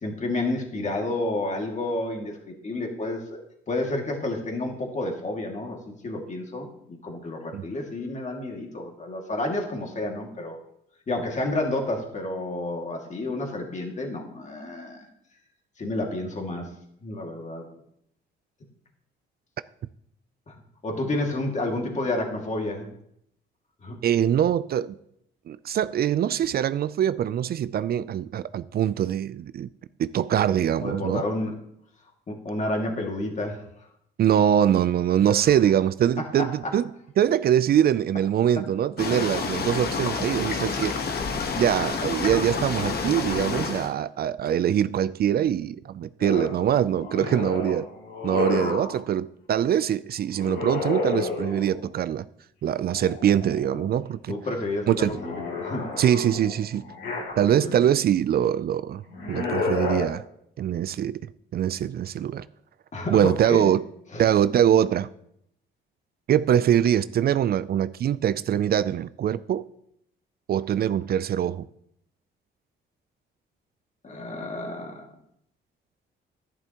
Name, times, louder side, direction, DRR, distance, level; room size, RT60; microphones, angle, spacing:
voice 1, 0.0-3.4 3.7-10.6 11.1-15.1 15.8-16.7 17.0-17.7 20.5-20.6 20.8-22.9 23.8-24.0 30.8-31.5 32.3-33.7 35.3-35.5 36.4-36.5 40.2-40.8 47.1-47.5 54.3-55.3 55.6-55.9 57.6-57.8 62.9-63.7 64.1-64.2 74.0-75.1, left 2 dB, 35° left, 2.2 m, -30 dB
voice 2, 24.0-24.9 25.5-29.7 30.0-31.2 34.2-36.9 37.2-40.9 41.6-47.9 48.2-52.2 52.6-54.3 54.9-55.1 56.0-56.8 57.4-59.0 59.3-60.2 60.6-61.2 61.5-62.5 63.1-63.8 64.2-65.1 66.3-69.7 70.5-71.7, right 10 dB, 50° right, 0.4 m, -23 dB
sound 1, 39.0-43.9, left 4 dB, 55° left, 1.3 m, -29 dB
sound 2, 46.2-49.0 50.3-51.9 52.8-53.9 54.3-57.8 59.0-60.0, left 4 dB, 75° left, 3.3 m, -31 dB
11.0 x 10.5 x 2.9 m
cardioid pair, 90°, 20 cm